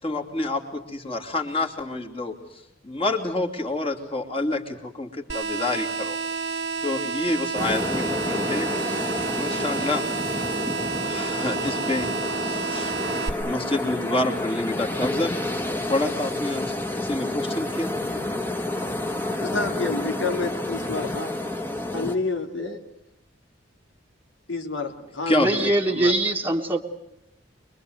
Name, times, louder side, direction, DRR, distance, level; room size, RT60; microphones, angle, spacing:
voice 1, 0.0-6.2 6.4-10.0 11.0-13.0 13.3-17.9 25.3-25.7, left 2 dB, 30° left, 2 dB, 2.7 m, -28 dB
sound 1, 5.3-13.3, right 5 dB, 60° right, 1.4 m, -30 dB
sound 2, 7.6-22.2, left 1 dB, 10° left, 1.5 m, -29 dB
voice 2, 19.3-21.3 21.9-22.8 24.5-26.1, left 3 dB, 80° left, 4 dB, 2.9 m, -29 dB
voice 3, 25.3-26.8, right 1 dB, 10° right, 0 dB, 1.5 m, -22 dB
24.5 x 22.5 x 8.0 m, 0.82 s
head